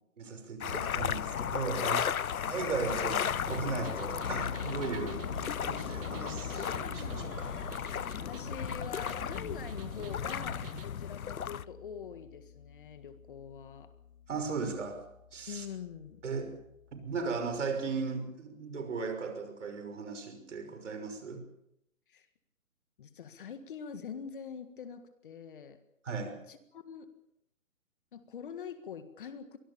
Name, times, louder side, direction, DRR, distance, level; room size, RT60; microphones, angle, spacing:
voice 1, 0.2-2.0 2.5-7.5 14.3-15.0 15.3-15.7 16.2-16.5 16.9-21.4 26.0-26.4, right 4 dB, 60° right, 8 dB, 6.0 m, -37 dB
sound 1, 0.6-11.6, left 8 dB, 85° left, 0.8 m, -35 dB
sound 2, 2.6-10.9, right 8 dB, 40° right, 1.8 m, -48 dB
sound 3, 4.2-17.7, left 7 dB, 65° left, 2.3 m, -47 dB
voice 2, 8.3-13.9 15.5-16.2 22.1-22.3 23.0-25.8 26.5-27.1 28.1-29.6, left 7 dB, 40° left, 10 dB, 1.8 m, -44 dB
23.5 x 19.0 x 7.1 m, 0.81 s
hypercardioid pair, 160°, 41 cm